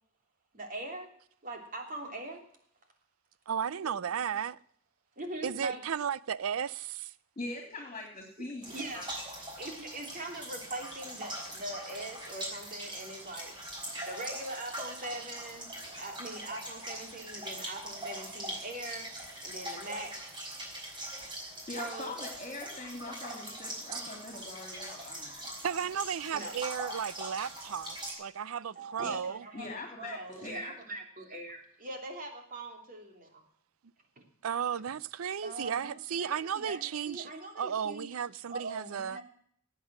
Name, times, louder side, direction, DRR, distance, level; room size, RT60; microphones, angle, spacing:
voice 1, 0.5-1.1 1.4-2.4 3.8-4.0 5.2-5.8 8.7-9.1 9.6-13.5 13.8-20.1 21.8-22.2 26.3-26.5 28.7-33.4 34.2-34.3 35.4-38.1 38.5-39.2, right 2 dB, 40° right, 3.1 m, -42 dB
voice 2, 3.5-4.6 5.4-7.1 23.9-24.0 25.6-29.4 34.4-37.3 37.6-39.2, right 8 dB, 90° right, 0.5 m, -34 dB
voice 3, 7.4-9.1 13.9-14.1 21.6-25.5 29.5-30.8, left 2 dB, 35° left, 2.8 m, -42 dB
sound 1, 8.6-28.1, right 1 dB, 25° right, 4.5 m, -42 dB
18.0 x 8.4 x 6.0 m
head